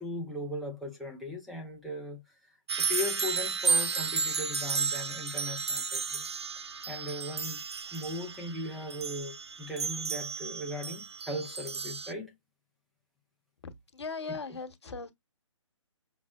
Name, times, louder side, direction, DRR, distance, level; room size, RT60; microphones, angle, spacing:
voice 1, 0.0-2.2 2.8-6.2 6.6-12.3, left 1 dB, ahead, 0.3 m, -38 dB
sound 1, 2.7-12.1, right 5 dB, 55° right, 0.5 m, -33 dB
voice 2, 13.6-15.1, left 4 dB, 55° left, 1.0 m, -39 dB
6.0 x 2.0 x 2.3 m
figure-of-eight pair, 140°, 17 cm